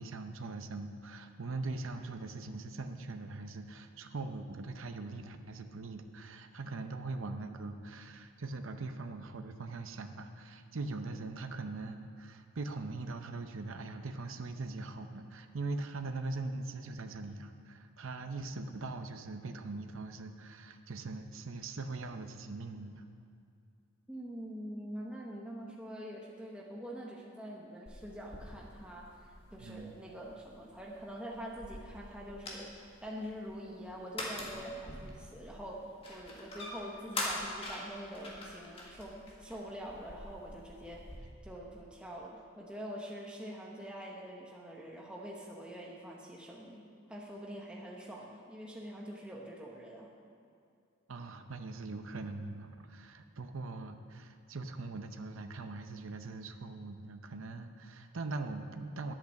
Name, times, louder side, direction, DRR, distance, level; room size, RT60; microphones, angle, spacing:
voice 1, 0.0-23.0 29.6-30.0 51.1-59.1, right 3 dB, 75° right, 7 dB, 0.7 m, -41 dB
voice 2, 24.1-29.1 29.5-32.7 33.0-50.1, equal, 5° right, -3 dB, 1.0 m, -45 dB
sound 1, 27.9-41.2, left 1 dB, 25° left, 1.8 m, -45 dB
10.5 x 8.8 x 6.6 m, 2.5 s
head